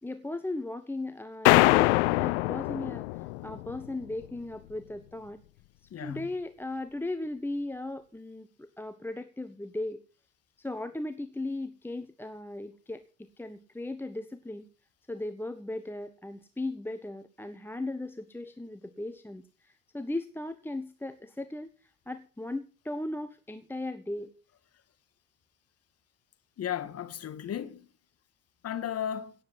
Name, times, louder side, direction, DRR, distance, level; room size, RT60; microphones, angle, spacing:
voice 1, 0.0-5.4 6.0-10.0 10.6-14.7 15.1-24.3, left 2 dB, 5° left, 1.0 m, -37 dB
sound 1, 1.5-3.9, left 22 dB, 60° left, 0.6 m, -23 dB
voice 2, 5.9-6.3 26.6-27.9 28.6-29.3, left 9 dB, 40° left, 1.7 m, -35 dB
17.5 x 7.9 x 6.1 m
figure-of-eight pair, 60°, 40 cm